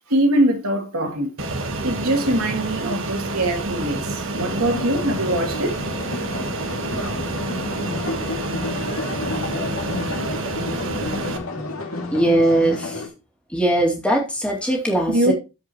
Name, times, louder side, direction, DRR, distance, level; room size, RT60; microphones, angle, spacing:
voice 1, 0.1-1.3 1.8-5.8 15.1-15.3, right 1 dB, 90° right, 2.6 m, -22 dB
Fixed-wing aircraft airplane, 1.4-11.4, right 2 dB, 65° right, 1.3 m, -29 dB
sound 1, 4.3-13.1, left 2 dB, 80° left, 2.4 m, -30 dB
voice 2, 12.1-13.0 13.5-15.3, right 1 dB, 5° left, 2.3 m, -20 dB
13.5 x 5.0 x 3.0 m
head